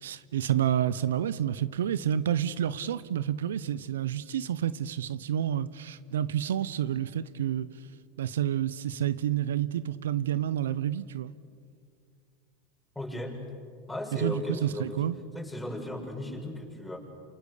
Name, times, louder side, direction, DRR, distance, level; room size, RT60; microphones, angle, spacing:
voice 1, 0.0-7.7 8.2-11.3 14.2-15.2, right 10 dB, 80° right, 0.8 m, -29 dB
voice 2, 12.9-13.5 13.9-17.0, left 1 dB, 5° left, 6.5 m, -36 dB
28.0 x 27.5 x 6.7 m
hypercardioid pair, 95°, 0 cm